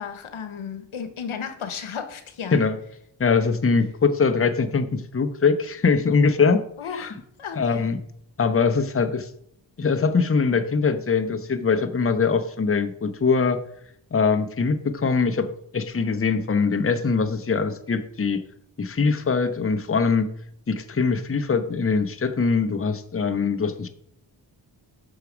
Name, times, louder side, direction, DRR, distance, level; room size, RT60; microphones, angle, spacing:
voice 1, 0.0-2.7 6.8-7.9, left 6 dB, 85° left, 1.0 m, -34 dB
voice 2, 3.2-6.6 6.9-7.1 7.5-8.0 8.4-9.3 9.8-13.6 14.1-15.5 15.7-18.4 18.8-20.3 20.7-23.9, left 5 dB, 30° left, 0.8 m, -22 dB
6.4 x 6.1 x 5.1 m
cardioid pair, 60°, 48 cm